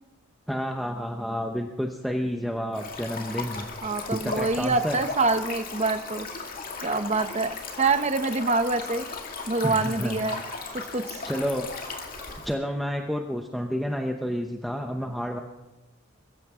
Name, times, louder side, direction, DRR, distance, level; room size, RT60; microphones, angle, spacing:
voice 1, 0.5-3.7 4.1-5.0 9.6-10.2 11.2-11.7 12.4-15.4, equal, ahead, 2 dB, 0.8 m, -30 dB
Stream, 2.7-12.5, left 3 dB, 40° left, 2.2 m, -36 dB
voice 2, 3.8-6.3 6.8-9.1 9.5-10.4 10.7-11.2, right 3 dB, 30° right, 9 dB, 0.8 m, -26 dB
23.0 x 14.0 x 3.7 m, 1.1 s
head